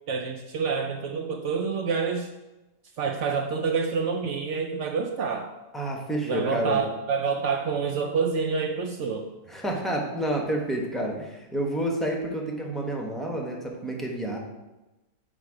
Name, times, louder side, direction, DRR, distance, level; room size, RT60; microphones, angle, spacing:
voice 1, 0.1-2.3 3.0-5.5 6.2-9.3, right 5 dB, 90° right, 4 dB, 0.6 m, -27 dB
voice 2, 5.7-6.8 9.5-14.4, right 1 dB, ahead, -1 dB, 0.7 m, -29 dB
6.2 x 5.1 x 4.8 m, 1.0 s
omnidirectional pair, 1.9 m